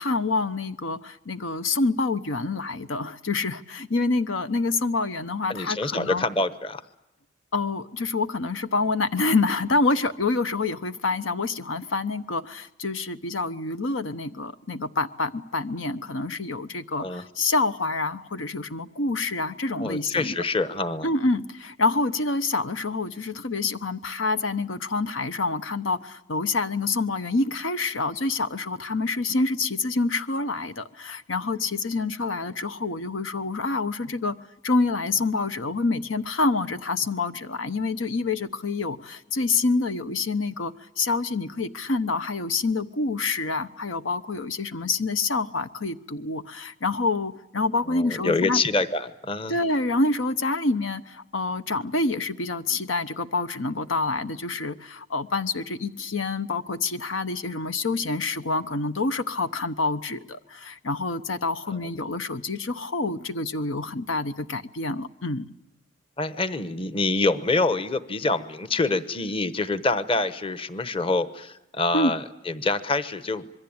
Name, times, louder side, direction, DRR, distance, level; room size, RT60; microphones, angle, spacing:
voice 1, 0.0-6.2 7.5-20.3 21.0-34.4 34.6-48.6 49.5-65.5 71.9-72.1, left 3 dB, 80° left, 1.0 m, -27 dB
voice 2, 5.5-6.8 17.0-17.3 19.8-21.1 47.9-49.6 61.7-61.8 66.2-73.4, left 3 dB, 30° left, 1.0 m, -26 dB
26.0 x 22.5 x 8.8 m
head